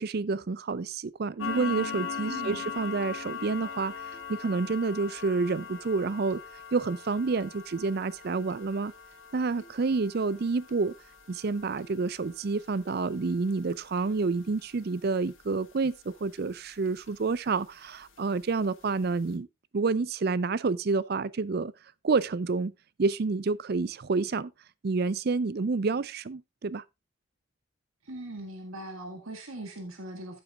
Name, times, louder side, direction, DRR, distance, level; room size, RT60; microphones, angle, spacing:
voice 1, 0.0-3.9 4.3-6.4 6.7-8.9 9.3-10.9 11.3-19.5 19.7-21.7 22.0-22.7 23.0-24.5 24.8-26.8, right 4 dB, 50° right, 0.4 m, -29 dB
sound 1, 1.4-16.5 16.9-17.1 17.5-17.6 18.1-18.2 18.6-18.7 19.0-19.2, left 6 dB, 70° left, 1.9 m, -41 dB
voice 2, 2.3-2.6 28.0-30.4, right 1 dB, 90° right, 1.8 m, -40 dB
13.5 x 8.1 x 2.4 m
head